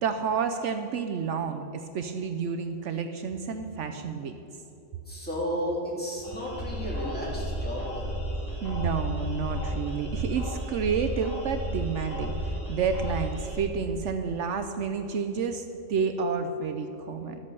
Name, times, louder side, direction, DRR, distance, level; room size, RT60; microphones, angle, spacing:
voice 1, 0.0-4.4 8.6-17.4, right 5 dB, 70° right, 6 dB, 1.0 m, -30 dB
voice 2, 5.0-8.2, equal, 5° left, -6 dB, 3.2 m, -33 dB
sound 1, 6.2-13.6, equal, 30° left, 3.6 m, -33 dB
12.5 x 8.5 x 6.7 m, 3.0 s
omnidirectional pair, 1.3 m